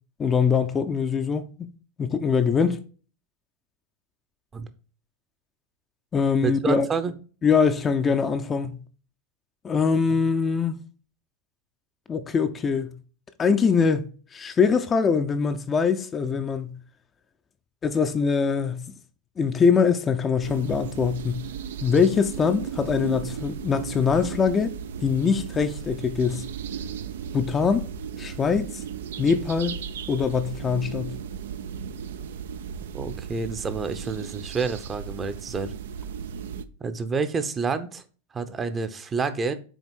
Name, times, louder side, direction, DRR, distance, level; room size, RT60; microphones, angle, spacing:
voice 1, 0.2-1.7 2.0-2.8 6.1-6.9 7.4-8.8 9.6-10.8 12.1-12.9 13.4-14.1 14.3-16.7 17.8-18.8 19.4-21.4 21.8-24.7 25.0-26.4 27.3-27.9 28.2-28.8 29.2-29.8 30.1-31.1, left 6 dB, 20° left, 0.6 m, -23 dB
voice 2, 6.4-7.1 32.9-35.7 36.8-38.0 38.3-39.5, right 5 dB, 20° right, 0.7 m, -28 dB
sound 1, 20.4-36.6, right 7 dB, 60° right, 0.5 m, -36 dB
6.4 x 4.3 x 4.4 m
figure-of-eight pair, 90°, 0 cm